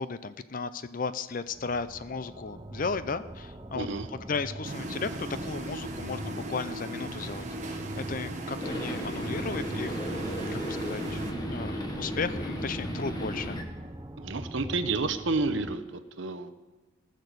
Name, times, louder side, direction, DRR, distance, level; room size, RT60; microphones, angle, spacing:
voice 1, 0.0-11.2 11.5-13.6, left 4 dB, 40° left, 13 dB, 0.5 m, -35 dB
sound 1, 1.4-15.8, right 1 dB, 15° right, 0.6 m, -42 dB
voice 2, 3.7-4.1 14.2-16.5, right 3 dB, 60° right, 11 dB, 0.8 m, -30 dB
sound 2, 4.6-11.3, right 1 dB, 35° right, 1.2 m, -38 dB
sound 3, 8.6-13.6, equal, 20° left, 1.3 m, -35 dB
18.5 x 6.6 x 6.7 m, 1.2 s
head